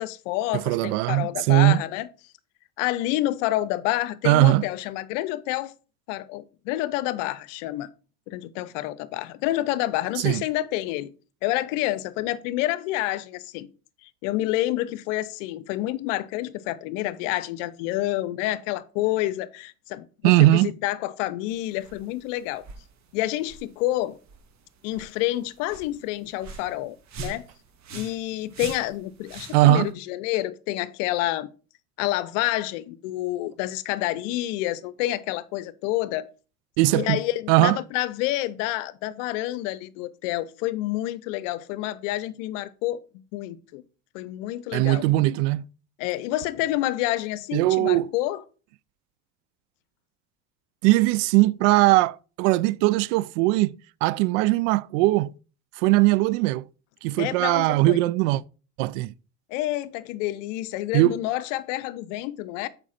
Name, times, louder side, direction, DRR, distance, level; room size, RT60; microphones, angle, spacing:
voice 1, 0.0-2.1 2.8-5.7 6.1-7.9 8.3-11.1 11.4-13.7 14.0-22.6 23.1-24.2 24.8-27.5 27.9-31.5 32.0-36.3 36.9-43.0 43.3-43.8 44.1-45.0 46.0-48.4 57.2-58.0 59.5-62.7, left 15 dB, 75° left, 0.7 m, -28 dB
voice 2, 0.5-1.8 4.2-4.7 10.2-10.4 20.2-20.7 29.5-29.9 36.8-37.2 37.5-37.8 44.7-45.6 47.5-48.1 50.8-53.8 54.0-55.3 55.8-56.6 57.0-58.4 58.8-59.1 60.9-61.2, right 18 dB, 70° right, 0.5 m, -20 dB
sound 1, 21.5-29.9, right 5 dB, 45° right, 1.5 m, -44 dB
7.2 x 5.1 x 4.2 m
hypercardioid pair, 75°, 38 cm